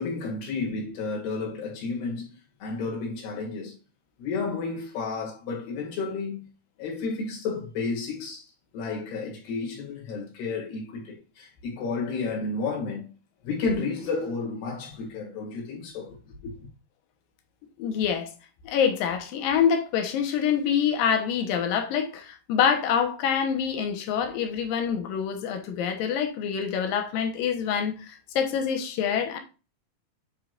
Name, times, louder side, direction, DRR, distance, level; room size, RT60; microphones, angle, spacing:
voice 1, 0.0-2.3 2.6-3.7 4.2-6.5 6.8-8.4 8.7-13.1 13.4-16.2 16.4-16.7, left 4 dB, 85° left, 4.3 m, -31 dB
voice 2, 17.8-18.3 18.6-29.4, left 7 dB, 70° left, 2.7 m, -26 dB
10.0 x 4.9 x 2.6 m
omnidirectional pair, 4.5 m